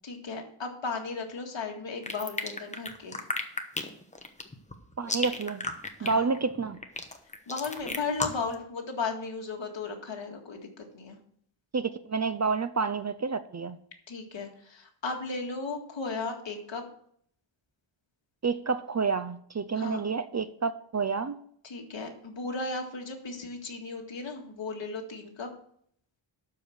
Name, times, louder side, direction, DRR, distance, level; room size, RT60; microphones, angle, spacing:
voice 1, 0.0-3.2 6.0-6.3 7.5-11.2 14.1-16.8 19.8-20.0 21.6-25.5, left 4 dB, 65° left, 2 dB, 2.0 m, -35 dB
sound 1, 2.0-8.5, left 2 dB, 15° left, 1.0 m, -33 dB
voice 2, 5.0-5.7 6.0-6.8 11.7-13.8 18.4-21.4, right 5 dB, 35° right, 13 dB, 0.5 m, -29 dB
12.0 x 4.9 x 7.1 m, 0.64 s
wide cardioid pair, 155°, 48 cm